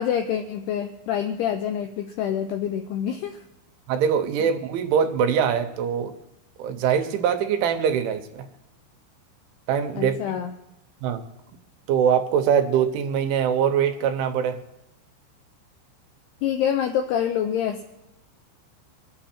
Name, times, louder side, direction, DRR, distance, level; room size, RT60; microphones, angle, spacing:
voice 1, 0.0-3.4 4.4-4.5 10.0-10.5 16.4-17.8, left 9 dB, 90° left, 6 dB, 2.3 m, -26 dB
voice 2, 3.9-6.1 6.6-8.5 9.7-10.2 11.0-11.2 11.9-14.6, right 8 dB, 80° right, 8 dB, 3.3 m, -23 dB
23.5 x 8.9 x 4.4 m, 0.89 s
omnidirectional pair, 5.5 m